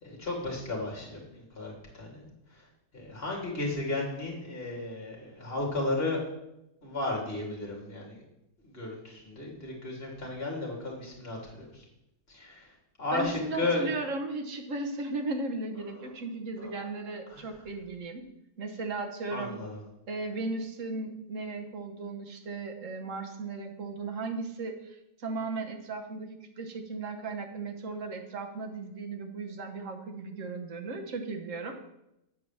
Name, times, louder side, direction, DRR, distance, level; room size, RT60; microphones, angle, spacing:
voice 1, 0.0-2.3 2.9-6.2 6.8-8.2 8.7-11.7 12.3-12.7 13.0-13.9 16.6-16.7 17.3-17.4 19.3-19.8, left 2 dB, 35° left, -2 dB, 2.7 m, -34 dB
voice 2, 13.1-18.2 18.6-19.6 20.1-31.9, right 3 dB, 50° right, 4 dB, 1.3 m, -36 dB
8.7 x 4.8 x 7.1 m, 0.84 s
omnidirectional pair, 1.9 m